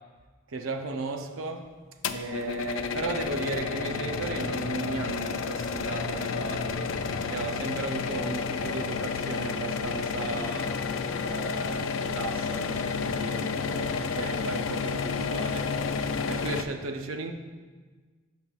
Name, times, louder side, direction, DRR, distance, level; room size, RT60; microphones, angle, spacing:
voice 1, 0.5-1.7 2.1-7.0 7.3-10.8 11.2-15.8 16.3-17.3, right 3 dB, 90° right, 0.6 m, -35 dB
sound 1, 2.0-16.6, left 5 dB, 75° left, 0.4 m, -31 dB
11.5 x 5.6 x 2.4 m
head